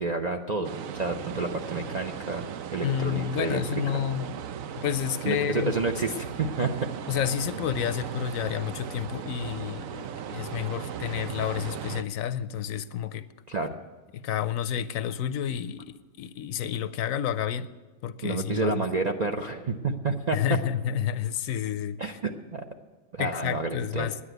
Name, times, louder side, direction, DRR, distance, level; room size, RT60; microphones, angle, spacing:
voice 1, 0.0-2.4 2.7-3.6 5.2-6.9 13.5-13.7 18.2-20.4 22.0-22.6 23.1-24.1, right 3 dB, 50° right, 3 dB, 0.5 m, -29 dB
sound 1, 0.6-12.0, right 8 dB, 70° right, 1.0 m, -37 dB
voice 2, 2.8-4.2 4.8-5.7 7.1-13.2 14.1-17.7 18.0-18.9 20.3-22.2 23.2-24.2, left 9 dB, 70° left, 13 dB, 0.9 m, -30 dB
9.9 x 9.8 x 7.9 m, 1.3 s
omnidirectional pair, 1.5 m